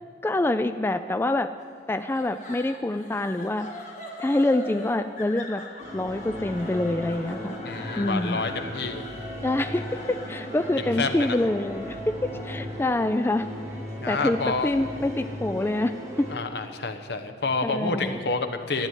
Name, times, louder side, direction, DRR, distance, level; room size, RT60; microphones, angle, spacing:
voice 1, 0.2-1.5 1.9-3.7 4.2-5.6 5.9-7.6 8.0-8.4 9.4-9.8 10.1-13.5 14.1-15.9 16.2-16.3 17.6-18.2, left 2 dB, 15° left, 10 dB, 0.3 m, -26 dB
sound 1, 1.9-15.1, left 2 dB, 45° left, 1.9 m, -42 dB
sound 2, 5.8-16.4, equal, 15° right, 2.7 m, -37 dB
voice 2, 7.6-9.0 10.8-11.4 14.0-14.7 16.3-18.9, left 3 dB, 65° left, 8 dB, 1.1 m, -29 dB
13.0 x 9.6 x 9.3 m, 2.1 s
head